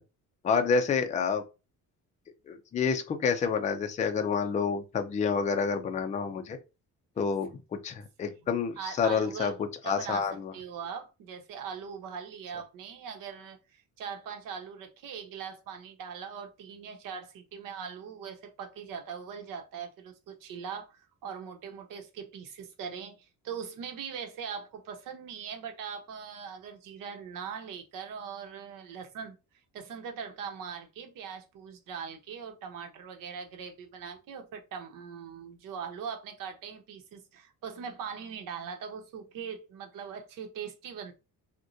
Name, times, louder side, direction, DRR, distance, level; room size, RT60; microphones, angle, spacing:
voice 1, 0.4-1.4 2.5-6.6 7.2-9.5 9.8-10.5, left 5 dB, 20° left, 0.4 m, -28 dB
voice 2, 8.8-29.4 29.7-41.1, right 7 dB, 75° right, 1.0 m, -41 dB
6.1 x 2.2 x 2.7 m
cardioid pair, 180°, 33 cm